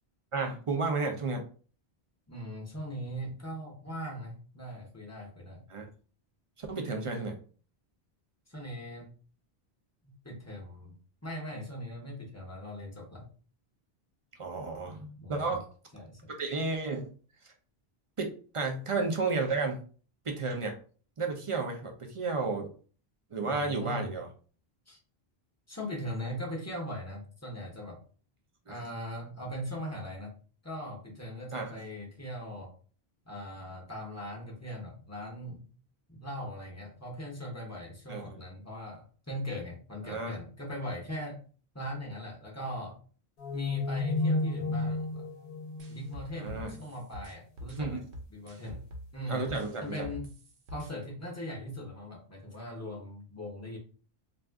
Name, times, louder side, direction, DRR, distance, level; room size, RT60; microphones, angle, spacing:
voice 1, 0.3-1.4 5.7-5.9 6.6-7.4 14.4-15.7 16.3-17.1 17.4-17.5 18.2-19.8 20.2-20.8 21.2-22.7 23.3-24.3 28.7-28.8 31.5-31.7 38.1-38.4 40.0-40.3 46.3-46.7 47.8-48.0 49.3-50.1, right 3 dB, 40° right, 3 dB, 0.5 m, -32 dB
voice 2, 2.3-5.6 8.5-9.1 10.0-11.0 11.2-13.3 15.2-15.6 15.9-16.3 23.4-24.1 24.9-25.0 25.7-28.0 28.7-30.3 30.6-32.7 33.3-35.7 36.1-41.4 41.7-43.0 43.5-45.3 45.9-48.0 48.3-48.8 49.1-49.4 49.8-50.4 50.7-53.8, equal, 15° left, -1 dB, 0.7 m, -40 dB
sound 1, 43.4-46.8, left 2 dB, 65° left, 0.8 m, -32 dB
sound 2, 45.8-49.1 49.5-50.9, equal, 65° right, 0.9 m, -44 dB
2.6 x 2.3 x 3.4 m, 0.40 s
omnidirectional pair, 1.0 m